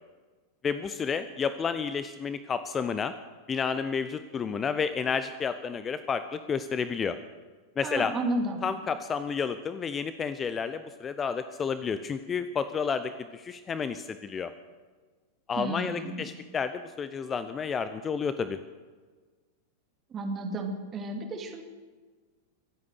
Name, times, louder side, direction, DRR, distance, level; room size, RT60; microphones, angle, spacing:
voice 1, 0.6-3.1 3.5-7.2 7.8-8.1 8.6-14.5 15.5-18.6, left 6 dB, 20° left, 12 dB, 0.7 m, -31 dB
voice 2, 7.8-8.6 15.6-16.3 20.1-21.6, right 2 dB, 25° right, 3 dB, 2.6 m, -32 dB
25.0 x 8.6 x 6.6 m, 1.4 s
figure-of-eight pair, 90°, 0 cm